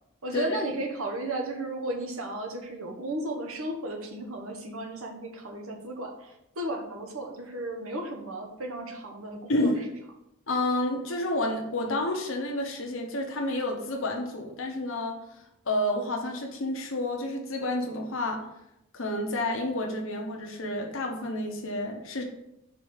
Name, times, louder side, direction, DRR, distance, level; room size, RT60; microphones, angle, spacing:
voice 1, 0.2-9.7, right 1 dB, 80° right, 3 dB, 1.1 m, -34 dB
voice 2, 9.5-9.8 10.5-15.2 15.7-18.4 18.9-22.2, left 1 dB, 70° left, 1 dB, 0.9 m, -29 dB
5.0 x 4.2 x 4.7 m, 0.84 s
head